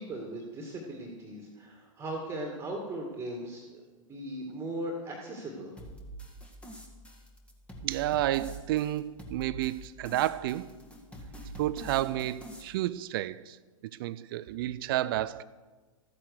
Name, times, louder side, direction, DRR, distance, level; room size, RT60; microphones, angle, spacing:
voice 1, 0.0-5.7, right 1 dB, 15° right, 1 dB, 2.1 m, -38 dB
sound 1, 5.8-12.6, right 2 dB, 5° left, 1.7 m, -46 dB
voice 2, 7.8-10.7 11.6-13.6 14.0-15.4, right 14 dB, 40° right, 17 dB, 0.5 m, -31 dB
14.0 x 9.9 x 6.6 m, 1.3 s
figure-of-eight pair, 105°, 17 cm